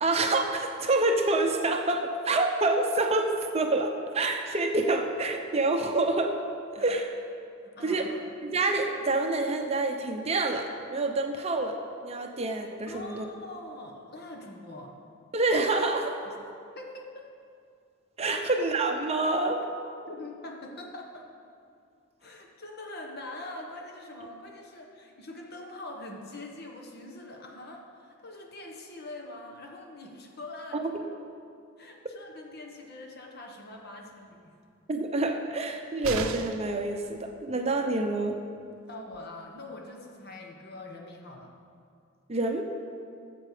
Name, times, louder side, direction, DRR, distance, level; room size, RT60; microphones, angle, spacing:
voice 1, 0.0-6.4 6.7-7.1 7.8-8.1 8.4-13.3 15.3-16.2 18.2-19.6 30.7-30.8 34.9-38.4 42.3-42.6, right 2 dB, 30° right, 4 dB, 0.7 m, -27 dB
voice 2, 7.6-8.3 12.9-14.9 16.3-16.4 16.7-17.2 18.3-18.4 20.1-21.3 22.2-30.9 31.8-34.5 38.9-41.5, left 2 dB, 50° left, 1 dB, 1.4 m, -43 dB
sound 1, 36.0-36.8 38.7-38.8 39.1-39.2, right 5 dB, 85° right, 0.6 m, -34 dB
13.5 x 7.7 x 5.0 m, 2.4 s
head